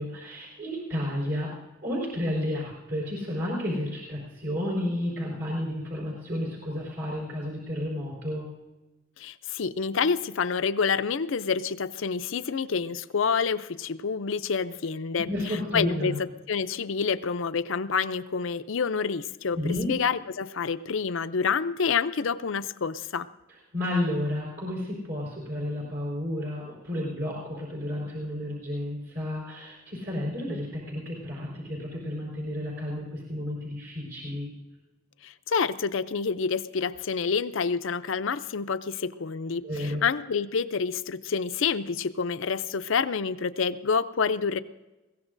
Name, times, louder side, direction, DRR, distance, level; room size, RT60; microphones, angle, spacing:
voice 1, 0.0-1.5 1.8-8.5 15.3-16.2 19.5-19.9 23.7-34.5 39.6-40.0, left 1 dB, 55° right, -3 dB, 4.4 m, -31 dB
voice 2, 9.2-15.3 15.7-16.1 16.5-23.3 35.2-44.6, left 5 dB, 70° left, 12 dB, 0.5 m, -28 dB
21.5 x 16.5 x 2.6 m, 1.1 s
head